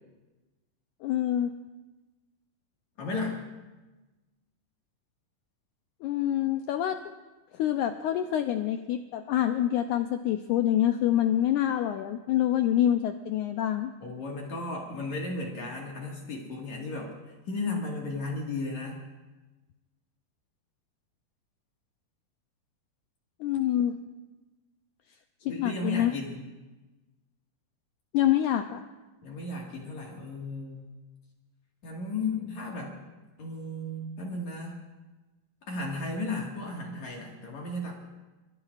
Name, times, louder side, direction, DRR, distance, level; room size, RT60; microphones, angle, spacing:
voice 1, 1.0-1.5 6.0-7.0 7.5-13.9 23.4-24.0 25.4-26.1 28.1-28.8, left 11 dB, 85° left, 7 dB, 1.7 m, -26 dB
voice 2, 3.0-3.4 14.0-17.1 17.5-19.0 25.5-26.4 29.2-30.9 31.8-33.0 33.4-34.8 35.7-37.9, left 2 dB, 55° left, -2 dB, 2.9 m, -34 dB
29.0 x 14.5 x 2.4 m, 1.2 s
omnidirectional pair, 4.1 m